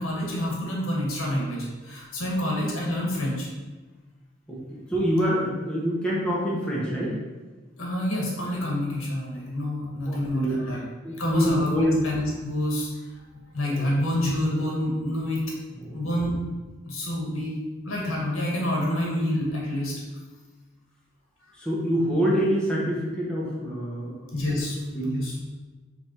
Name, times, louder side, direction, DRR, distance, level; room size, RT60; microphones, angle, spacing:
voice 1, 0.0-3.5 7.8-10.8 11.2-12.9 13.5-15.4 15.9-16.3 16.8-17.6 17.8-19.9 24.3-25.4, left 1 dB, 85° left, -3 dB, 1.8 m, -27 dB
voice 2, 4.9-7.1 10.1-10.6 11.0-12.0 13.6-13.9 15.8-15.9 21.6-24.6 24.9-25.3, equal, 5° left, -6 dB, 1.1 m, -26 dB
5.2 x 4.0 x 4.6 m, 1.3 s
head